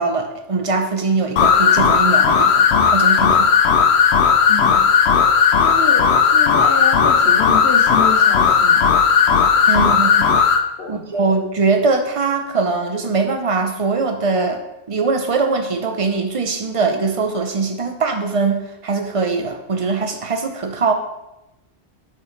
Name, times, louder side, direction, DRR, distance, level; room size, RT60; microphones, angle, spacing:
voice 1, 0.0-2.7 2.9-3.5 9.7-10.4 10.9-14.6 14.9-20.9, right 4 dB, 35° right, 5 dB, 0.9 m, -21 dB
sound 1, 1.4-10.6, left 6 dB, 80° left, 0.9 m, -14 dB
voice 2, 4.5-4.9 5.6-8.9 9.7-10.0 10.8-11.2, left 5 dB, 65° left, 4 dB, 1.3 m, -28 dB
9.6 x 5.9 x 3.3 m, 0.91 s
omnidirectional pair, 1.1 m